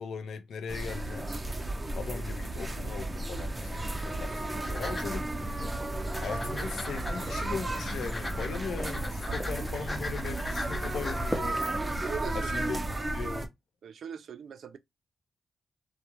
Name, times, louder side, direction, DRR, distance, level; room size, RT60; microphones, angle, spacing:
voice 1, 0.0-1.3 1.9-5.3 6.2-11.6 12.3-12.8 13.1-13.5, left 5 dB, 80° left, 0.5 m, -39 dB
sound 1, 0.7-13.5, right 1 dB, 20° right, 0.6 m, -34 dB
sound 2, 3.6-12.0, left 1 dB, 25° left, 0.6 m, -40 dB
voice 2, 12.0-12.7 12.9-13.1 13.8-14.8, right 7 dB, 75° right, 0.3 m, -41 dB
2.3 x 2.0 x 2.9 m
cardioid pair, 70°, 0 cm